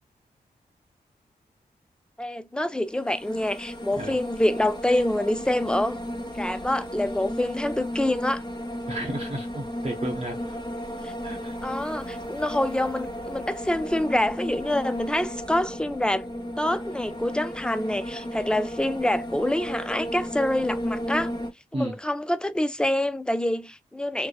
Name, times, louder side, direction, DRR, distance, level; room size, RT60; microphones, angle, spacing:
voice 1, 2.2-6.0 6.3-8.4 11.0-11.1 11.6-16.2 16.6-21.3 21.7-24.3, left 1 dB, 5° left, 0.4 m, -26 dB
sound 1, 2.8-21.5, equal, 25° left, 0.9 m, -34 dB
voice 2, 8.9-10.6 11.2-11.6 21.7-22.0, right 1 dB, 35° right, 0.8 m, -32 dB
2.7 x 2.0 x 2.2 m
cardioid pair, 55°, 17 cm